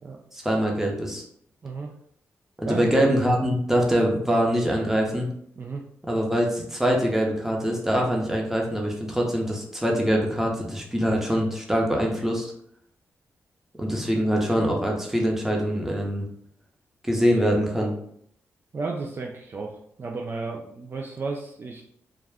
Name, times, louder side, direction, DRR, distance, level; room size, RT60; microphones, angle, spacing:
voice 1, 0.3-1.2 2.6-5.3 6.1-12.5 13.8-16.3 17.0-17.9, equal, 5° right, -1 dB, 0.8 m, -24 dB
voice 2, 18.7-21.8, right 3 dB, 40° right, 1 dB, 0.3 m, -33 dB
2.4 x 2.1 x 3.4 m, 0.68 s
cardioid pair, 65°, 5 cm